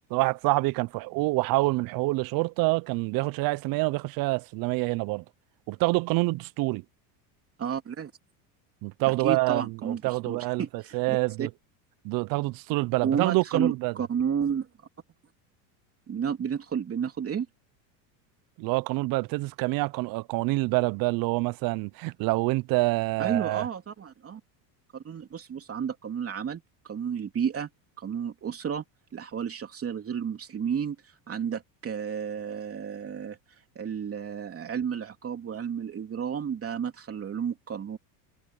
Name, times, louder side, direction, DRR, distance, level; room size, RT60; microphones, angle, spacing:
voice 1, 0.1-5.2 5.7-6.8 8.8-11.5 12.0-13.9 18.6-23.7, right 23 dB, 45° right, 0.6 m, -27 dB
voice 2, 7.6-8.1 9.0-11.5 13.0-14.7 16.1-17.5 23.2-24.4 24.9-27.7 28.0-28.8 29.1-33.4 33.7-38.0, right 7 dB, 30° right, 3.2 m, -32 dB
supercardioid pair, 110°, 48 cm